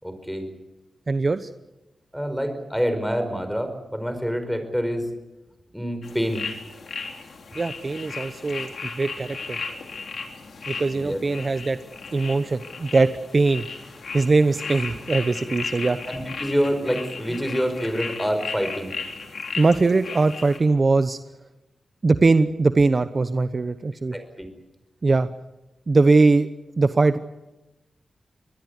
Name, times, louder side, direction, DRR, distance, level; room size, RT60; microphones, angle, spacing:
voice 1, 0.0-0.5 2.1-5.1 5.7-6.5 10.9-11.2 16.0-18.9 24.1-24.5, equal, ahead, 8 dB, 5.0 m, -26 dB
voice 2, 1.1-1.5 7.5-9.6 10.7-11.8 12.1-13.7 14.1-16.0 19.6-21.2 22.0-24.1 25.0-25.3 25.9-26.5 26.8-27.2, right 3 dB, 40° right, 11 dB, 0.9 m, -21 dB
sound 1, 6.0-20.6, left 4 dB, 70° left, 3.7 m, -35 dB
24.5 x 20.0 x 8.3 m, 0.99 s
wide cardioid pair, 80°, 0 cm